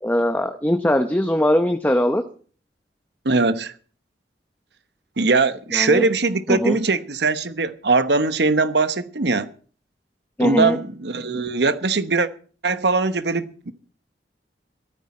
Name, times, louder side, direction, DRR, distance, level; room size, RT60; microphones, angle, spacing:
voice 1, 0.0-2.2 5.7-6.1 6.5-6.8 10.4-10.8, left 1 dB, 10° left, 0.8 m, -20 dB
voice 2, 3.2-3.7 5.2-9.5 10.4-12.3 12.6-13.7, right 3 dB, 70° right, 1.1 m, -21 dB
15.5 x 13.5 x 4.3 m
head